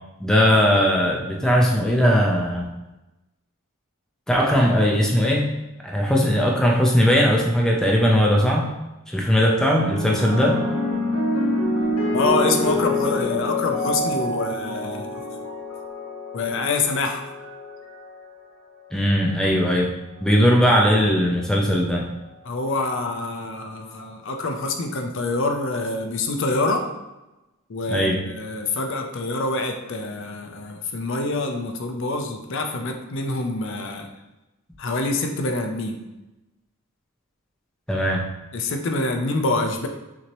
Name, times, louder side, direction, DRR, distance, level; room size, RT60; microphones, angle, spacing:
voice 1, 0.2-2.7 4.3-5.5 5.8-8.7 9.1-10.6 18.9-19.9 20.2-22.1 27.9-28.2 37.9-38.2, equal, 5° left, -2 dB, 0.4 m, -19 dB
sound 1, 9.7-18.3 19.2-19.5, left 1 dB, 85° left, 1.1 m, -26 dB
voice 2, 12.1-15.1 16.3-17.2 22.5-26.8 27.7-34.1 34.8-36.0 38.5-39.9, left 2 dB, 60° left, 4 dB, 0.5 m, -26 dB
5.9 x 2.8 x 3.0 m, 1.0 s
head